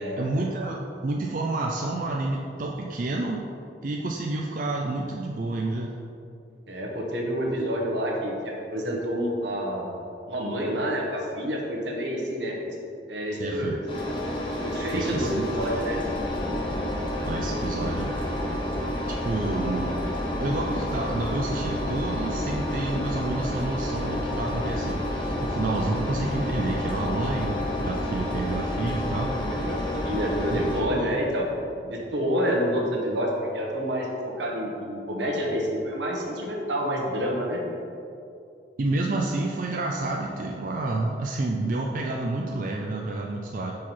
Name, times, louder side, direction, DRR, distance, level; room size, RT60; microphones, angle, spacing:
voice 1, 0.2-3.4 3.8-5.9 13.4-13.8 14.9-15.5 17.3-18.1 19.1-20.0 20.4-29.6 30.5-31.2 38.8-43.7, right 2 dB, 45° right, 0 dB, 0.4 m, -29 dB
voice 2, 6.7-9.9 10.3-12.6 13.1-13.8 14.6-16.0 29.5-31.5 31.8-34.1 34.4-37.6, equal, 80° right, -1 dB, 1.1 m, -28 dB
Engine, 13.9-30.8, left 1 dB, 30° left, 0.9 m, -29 dB
5.5 x 4.6 x 4.5 m, 2.6 s
head